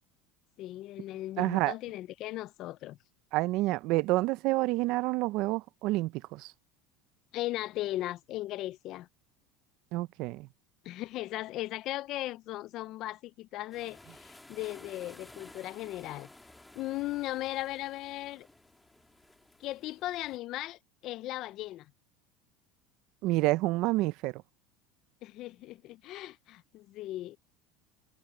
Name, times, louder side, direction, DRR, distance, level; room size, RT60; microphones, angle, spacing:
voice 1, 0.6-3.0 7.3-9.1 10.8-16.3 16.7-18.5 19.6-21.9 25.2-27.4, left 16 dB, 50° left, 0.6 m, -37 dB
voice 2, 1.4-1.7 3.3-6.5 9.9-10.5 23.2-24.4, right 19 dB, 60° right, 0.7 m, -28 dB
sound 1, 13.7-20.4, left 2 dB, 5° left, 2.1 m, -55 dB
supercardioid pair, 125°, 0 cm